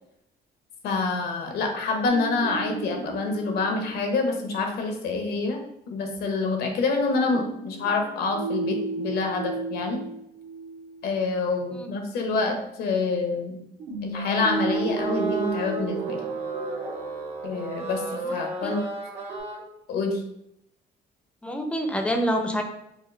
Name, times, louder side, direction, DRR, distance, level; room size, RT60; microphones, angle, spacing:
voice 1, 0.8-5.6 5.9-10.0 11.0-13.6 14.0-16.2 17.4-18.8 19.9-20.2, left 3 dB, 70° left, 4 dB, 0.8 m, -27 dB
sound 1, 2.1-4.7 7.3-11.1 13.8-17.6 19.3-19.4, right 4 dB, 85° right, 1.5 m, -33 dB
sound 2, 14.1-19.6, right 2 dB, 40° right, 0.9 m, -34 dB
voice 2, 21.4-22.6, equal, 5° left, 4 dB, 0.5 m, -26 dB
4.9 x 2.0 x 3.1 m, 0.82 s
cardioid pair, 110°, 17 cm